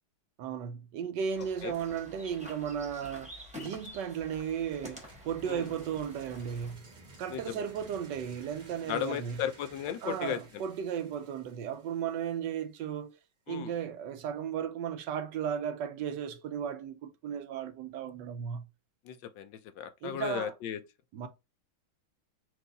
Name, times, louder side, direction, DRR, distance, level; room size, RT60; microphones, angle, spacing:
voice 1, 0.4-6.9 7.2-9.4 10.0-13.2 13.5-18.7 20.0-20.5 21.1-21.3, right 8 dB, 75° right, 1.1 m, -35 dB
sound 1, 1.3-6.7, left 1 dB, 5° right, 0.8 m, -48 dB
sound 2, 4.7-12.5, right 2 dB, 35° right, 0.8 m, -55 dB
voice 2, 7.3-7.6 8.9-10.4 13.5-13.7 19.0-20.8, left 10 dB, 75° left, 1.2 m, -35 dB
4.7 x 2.6 x 3.9 m
omnidirectional pair, 2.2 m